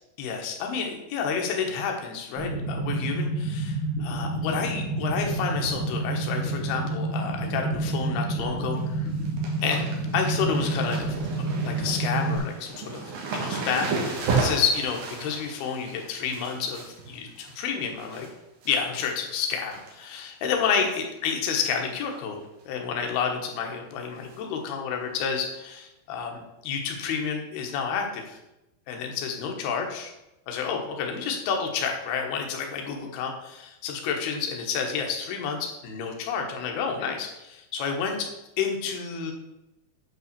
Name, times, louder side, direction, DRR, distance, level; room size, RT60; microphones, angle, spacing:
voice 1, 0.2-9.1 9.6-9.8 10.1-11.1 11.6-13.0 13.3-18.3 18.7-22.4 22.7-28.4 28.9-30.1 30.5-38.2 38.6-39.3, left 6 dB, 75° left, 2 dB, 3.1 m, -30 dB
sound 1, 2.4-12.4, right 2 dB, 80° right, 3.6 m, -29 dB
sound 2, 8.5-8.8 9.1-18.3 18.6-19.1 19.4-20.2 20.5-20.6 21.6-21.9 22.1-22.2 22.6-22.7 24.3-24.4 25.1-25.2, right 4 dB, 65° right, 3.0 m, -33 dB
8.3 x 5.6 x 6.7 m, 0.94 s
omnidirectional pair, 4.7 m